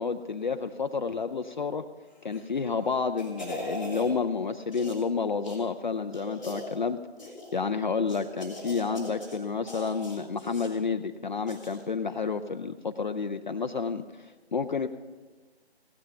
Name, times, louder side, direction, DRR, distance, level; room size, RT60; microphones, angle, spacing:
voice 1, 0.0-1.9 2.2-7.0 7.5-14.0 14.5-14.9, left 5 dB, 45° left, 7 dB, 0.5 m, -30 dB
sound 1, 2.2-2.6 3.0-4.1 4.7-5.1 5.4-5.6 6.1-6.8 7.2-7.6 8.1-9.4 9.7-10.7 11.5-11.8 12.1-12.2, equal, ahead, 1.4 m, -40 dB
16.0 x 10.0 x 5.7 m, 1.3 s
figure-of-eight pair, 155°, 32 cm